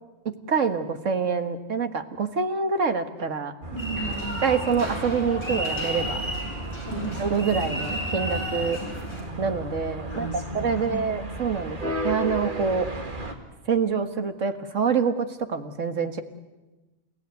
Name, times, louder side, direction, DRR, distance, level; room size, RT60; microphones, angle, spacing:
voice 1, 0.5-3.5 4.4-6.2 7.2-8.8 9.4-10.3 10.5-12.9 13.7-16.2, right 5 dB, 90° right, 8 dB, 2.0 m, -26 dB
sound 1, 3.6-13.3, right 1 dB, 40° right, 2.3 m, -34 dB
voice 2, 3.7-4.4 6.9-7.5 10.1-11.2, right 3 dB, 60° left, 1 dB, 6.0 m, -35 dB
sound 2, 3.8-9.2, equal, 20° left, 6.7 m, -32 dB
29.5 x 17.0 x 9.6 m, 1.1 s
omnidirectional pair, 1.3 m